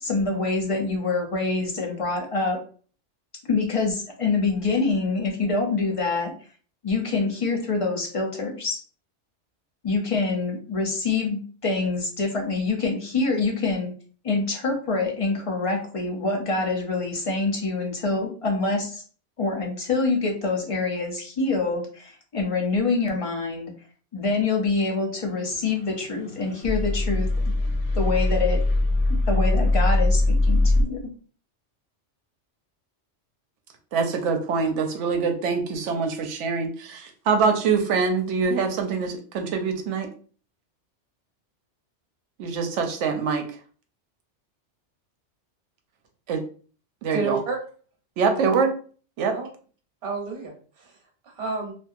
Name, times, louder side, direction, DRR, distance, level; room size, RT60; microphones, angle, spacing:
voice 1, 0.0-2.6 3.5-6.3 6.8-8.8 9.8-13.9 14.2-19.0 19.4-23.7 24.1-27.3 28.0-28.6 29.3-31.0, left 3 dB, 45° left, 1 dB, 0.4 m, -25 dB
sound 1, 25.5-30.8, left 2 dB, 75° left, 1.0 m, -22 dB
voice 2, 33.9-40.1 42.4-43.5 46.3-46.4 47.0-47.4 48.2-48.7 49.2-49.3, right 5 dB, 90° right, 5 dB, 0.9 m, -24 dB
voice 3, 47.1-47.6 48.4-48.5 49.3-49.5 50.0-51.0 51.2-51.7, right 4 dB, 65° right, 1 dB, 1.0 m, -30 dB
2.6 x 2.5 x 2.4 m, 0.42 s
omnidirectional pair, 1.2 m